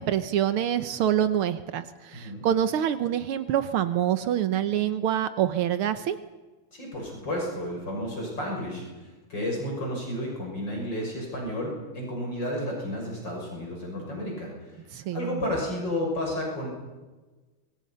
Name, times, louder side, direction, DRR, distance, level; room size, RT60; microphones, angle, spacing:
voice 1, 0.0-6.2 14.9-15.4, right 10 dB, 80° right, 10 dB, 1.8 m, -26 dB
voice 2, 6.7-8.8 9.3-14.5 15.1-16.7, left 1 dB, 55° left, -1 dB, 7.1 m, -31 dB
28.0 x 25.0 x 5.7 m, 1.2 s
omnidirectional pair, 2.4 m